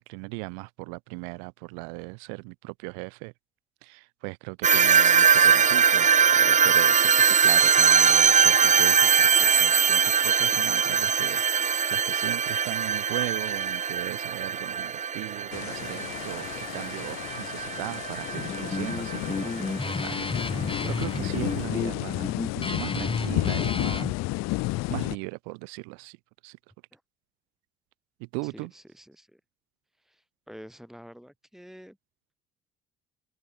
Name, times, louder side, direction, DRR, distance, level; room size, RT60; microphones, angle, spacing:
voice 1, 0.0-3.3 3.8-24.1 24.9-26.2 26.4-26.6 28.2-28.7, right 40 dB or more, 70° right, 2.7 m, -38 dB
sound 1, 4.6-19.6, right 7 dB, 25° right, 0.6 m, -22 dB
sound 2, 15.5-25.2, left 20 dB, 55° left, 0.8 m, -32 dB
Guitar, 18.4-24.1, left 3 dB, 15° left, 1.9 m, -32 dB
voice 2, 28.4-29.4 30.0-32.0, equal, ahead, 6.3 m, -48 dB
figure-of-eight pair, 55°, 31 cm